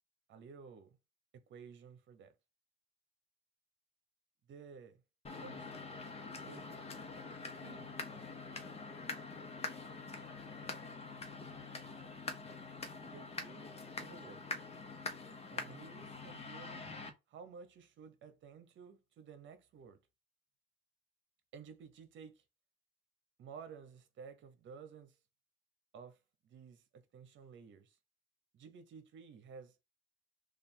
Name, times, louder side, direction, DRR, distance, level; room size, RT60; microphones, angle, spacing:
voice 1, 0.3-1.0 1.3-2.3 4.5-5.0 5.4-5.8 6.4-6.7 7.5-7.9 13.0-13.7 14.0-14.4 15.5-16.9 17.3-20.0 21.5-22.4 23.4-25.2 25.9-26.2 26.4-28.0 28.5-29.8, right 6 dB, 70° right, 0.9 m, -53 dB
sound 1, 5.2-17.1, left 3 dB, 30° left, 0.9 m, -45 dB
3.3 x 2.5 x 4.1 m
cardioid pair, 90°, 20 cm